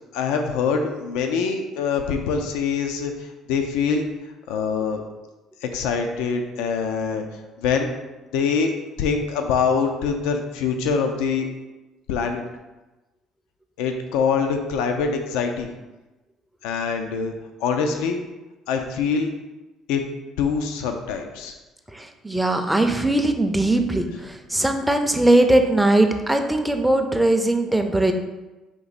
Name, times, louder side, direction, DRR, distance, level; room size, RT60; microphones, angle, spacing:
voice 1, 0.1-3.1 3.5-4.0 4.5-5.0 5.6-7.2 7.6-7.9 8.3-8.7 9.0-11.5 12.1-12.4 13.8-15.7 16.6-17.3 17.6-18.2 18.7-19.3 19.9-20.0 20.4-21.5, left 5 dB, 90° left, 5 dB, 0.5 m, -24 dB
voice 2, 21.9-28.1, right 1 dB, 5° right, 5 dB, 0.5 m, -20 dB
4.6 x 2.8 x 4.0 m, 1.1 s
cardioid pair, 100°, 0 cm